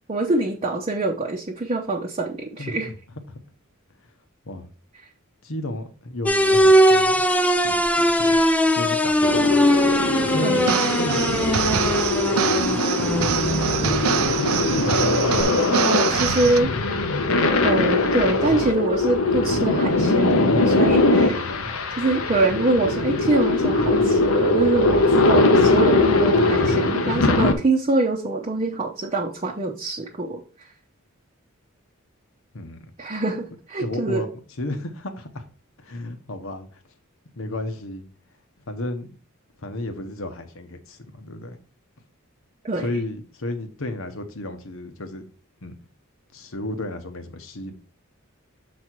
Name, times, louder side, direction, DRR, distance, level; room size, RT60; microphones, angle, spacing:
voice 1, 0.1-2.9 10.4-10.8 15.8-16.7 17.6-21.4 22.0-30.4 33.0-34.2 42.6-43.0, right 2 dB, 30° right, 0.8 m, -24 dB
voice 2, 2.6-2.9 3.3-3.4 4.4-4.7 5.4-7.1 7.6-8.4 8.8-9.6 10.3-10.6 11.0-11.6 12.3-14.0 15.4-16.1 21.2-21.7 32.5-32.8 33.8-34.3 34.6-35.4 35.8-36.7 37.3-38.1 38.7-39.1 39.6-41.6 42.7-45.2 45.6-45.7 46.3-47.8, left 1 dB, 70° left, 1.1 m, -33 dB
sound 1, 6.3-15.4, equal, 5° left, 0.5 m, -21 dB
sound 2, 9.2-27.5, left 2 dB, 90° left, 1.0 m, -21 dB
sound 3, 10.6-16.6, right 8 dB, 90° right, 0.5 m, -25 dB
7.2 x 4.2 x 4.6 m
head